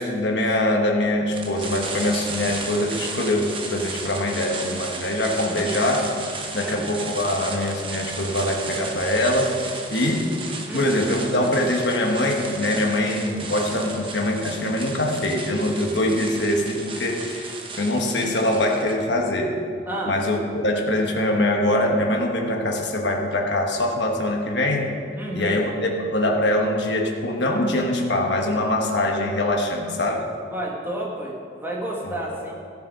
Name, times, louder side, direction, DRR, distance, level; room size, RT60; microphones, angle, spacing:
voice 1, 0.0-6.1 6.5-9.5 9.9-10.3 10.7-19.6 20.1-24.9 25.3-30.3 32.0-32.4, left 1 dB, 70° left, 1 dB, 1.3 m, -23 dB
sound 1, 1.3-19.0, right 3 dB, 25° right, 1.0 m, -34 dB
voice 2, 5.3-5.7 6.6-6.9 10.7-10.9 19.9-20.2 25.2-25.6 30.5-32.5, right 1 dB, 10° right, -3 dB, 1.6 m, -31 dB
14.0 x 6.8 x 5.4 m, 2.2 s
head